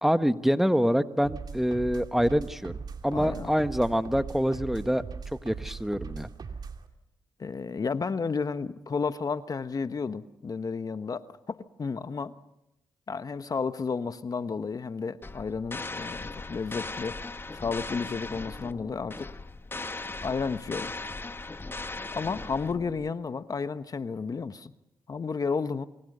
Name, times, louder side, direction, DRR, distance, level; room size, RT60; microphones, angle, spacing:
voice 1, 0.0-5.0 5.4-6.3, equal, 5° right, 10 dB, 1.4 m, -26 dB
sound 1, 1.2-6.9, right 5 dB, 55° right, 2.6 m, -40 dB
voice 2, 3.1-3.5 7.4-12.4 13.1-17.2 17.5-19.3 20.2-20.9 22.1-24.7 25.1-25.9, left 5 dB, 45° left, 11 dB, 1.3 m, -32 dB
sound 2, 15.2-23.1, left 3 dB, 25° left, 1.4 m, -38 dB
28.5 x 24.0 x 6.8 m, 0.87 s
supercardioid pair, 50°, 9 cm